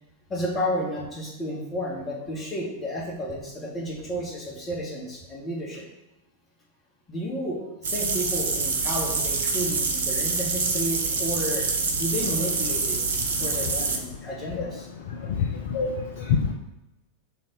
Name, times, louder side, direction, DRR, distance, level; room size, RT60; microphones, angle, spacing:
voice 1, 0.3-5.9 7.1-13.0 13.4-14.9, equal, 20° left, -3 dB, 1.9 m, -32 dB
sound 1, 7.8-14.0, right 4 dB, 65° right, 0.9 m, -26 dB
voice 2, 15.4-16.5, left 6 dB, 55° left, 1 dB, 0.6 m, -25 dB
4.9 x 4.0 x 5.3 m, 0.97 s
figure-of-eight pair, 90°, 0 cm